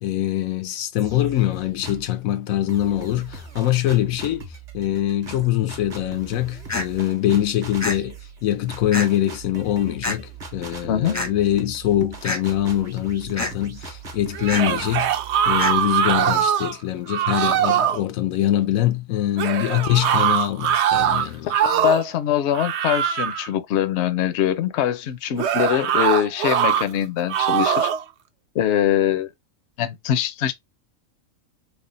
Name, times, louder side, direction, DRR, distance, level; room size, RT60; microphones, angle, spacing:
voice 1, 0.0-4.5 4.7-15.1 15.5-21.5, left 12 dB, 85° left, 1.0 m, -23 dB
sound 1, 1.0-2.2 2.7-16.4, right 3 dB, 35° right, 0.9 m, -40 dB
sound 2, 6.7-6.9 7.8-8.0 8.9-9.1 10.0-10.2 11.1-11.3 12.2-12.4 13.4-13.5 14.5-14.7 15.6-15.7, left 2 dB, 15° left, 0.6 m, -26 dB
voice 2, 10.9-11.2 21.5-27.9 28.5-29.3 29.8-30.5, left 11 dB, 65° left, 0.8 m, -23 dB
sound 3, 14.3-16.8 17.1-18.0 19.4-22.1 22.5-23.5 25.4-26.9 27.3-28.0, right 10 dB, 65° right, 0.8 m, -22 dB
3.4 x 2.3 x 3.8 m
omnidirectional pair, 1.4 m